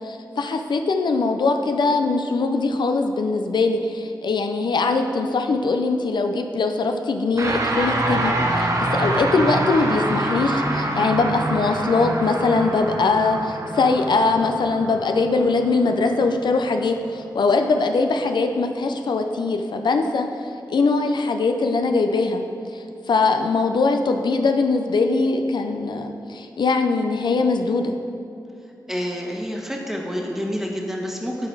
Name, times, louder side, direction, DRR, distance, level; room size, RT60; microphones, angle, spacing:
voice 1, 0.0-20.3 20.7-22.4 22.7-28.0, left 3 dB, 80° left, 5 dB, 0.4 m, -21 dB
sound 1, 7.4-16.8, right 1 dB, 45° right, 1.0 m, -26 dB
voice 2, 28.9-31.5, equal, 5° right, 0 dB, 1.2 m, -28 dB
11.0 x 3.9 x 4.7 m, 2.6 s
cardioid pair, 55°, 8 cm